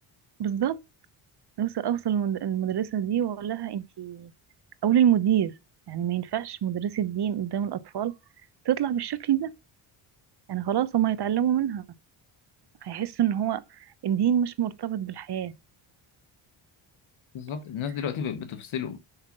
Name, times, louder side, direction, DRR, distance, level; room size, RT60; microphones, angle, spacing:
voice 1, 0.4-0.8 1.6-4.3 4.8-5.5 5.9-8.1 8.7-9.5 10.5-11.8 12.8-13.6 14.0-15.5, right 10 dB, 50° right, 0.9 m, -26 dB
voice 2, 17.3-19.0, left 7 dB, 70° left, 1.3 m, -32 dB
5.9 x 4.8 x 6.6 m
cardioid pair, 95°, 50 cm